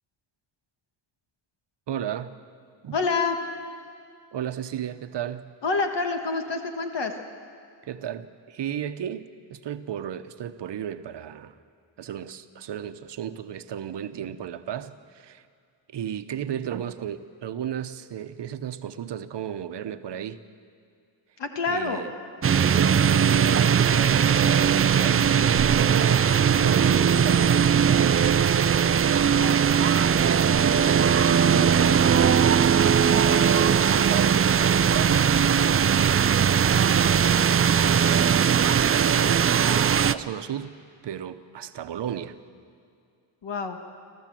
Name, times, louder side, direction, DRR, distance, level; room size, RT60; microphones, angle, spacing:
voice 1, 1.9-2.4 2.8-3.0 4.3-5.5 7.8-11.5 12.0-15.4 15.9-20.4 21.7-22.1 22.6-26.3 26.6-29.0 30.2-35.3 36.9-40.7 41.0-42.4, right 9 dB, 60° right, 10 dB, 1.0 m, -34 dB
voice 2, 2.9-3.4 5.6-7.1 21.4-22.0 29.3-29.6 43.4-43.8, left 4 dB, 60° left, 5 dB, 1.7 m, -27 dB
sound 1, 22.4-40.1, right 7 dB, 30° right, 0.4 m, -20 dB
27.0 x 14.0 x 7.6 m, 2.3 s
wide cardioid pair, 120°, 47 cm